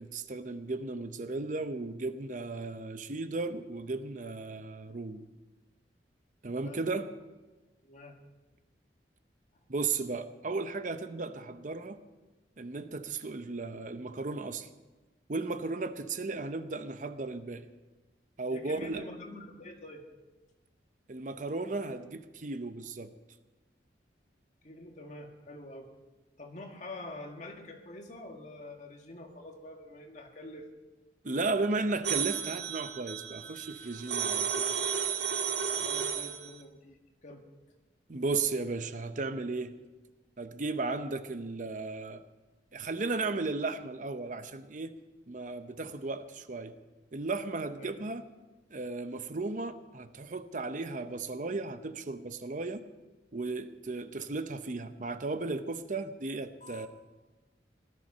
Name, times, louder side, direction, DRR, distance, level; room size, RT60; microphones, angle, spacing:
voice 1, 0.0-5.3 6.4-7.1 9.7-12.0 12.6-14.7 15.3-17.7 18.4-19.0 21.1-23.1 31.2-34.7 38.1-39.7 40.4-42.2 42.7-44.9 45.3-46.7 47.1-48.2 48.7-52.8 53.3-56.9, right 3 dB, 45° right, 10 dB, 0.7 m, -35 dB
voice 2, 7.8-8.1 18.5-20.0 24.6-25.9 26.4-30.7 35.7-37.0 37.2-37.4 47.8-48.0 56.6-56.8, left 1 dB, 40° left, 2 dB, 1.9 m, -46 dB
sound 1, 32.0-36.5, right 7 dB, 70° right, 1.7 m, -33 dB
18.0 x 12.5 x 5.5 m, 1.2 s
head